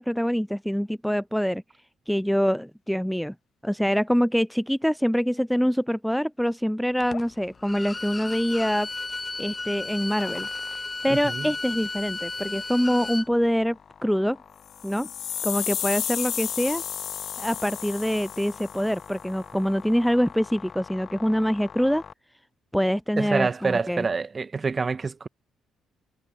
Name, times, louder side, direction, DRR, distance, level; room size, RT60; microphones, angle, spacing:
voice 1, 0.0-1.6 2.1-3.3 3.6-8.9 9.4-10.5 11.0-14.4 14.8-15.1 15.4-16.8 17.4-22.0 22.7-24.1, equal, ahead, 0.3 m, -25 dB
sound 1, 7.0-22.1, left 7 dB, 50° left, 3.1 m, -46 dB
Bowed string instrument, 7.6-13.3, left 3 dB, 25° left, 1.1 m, -34 dB
voice 2, 11.1-11.5 23.2-25.3, right 4 dB, 35° right, 0.7 m, -27 dB
sound 2, 14.7-18.9, left 10 dB, 65° left, 0.5 m, -32 dB
supercardioid pair, 65°, 0 cm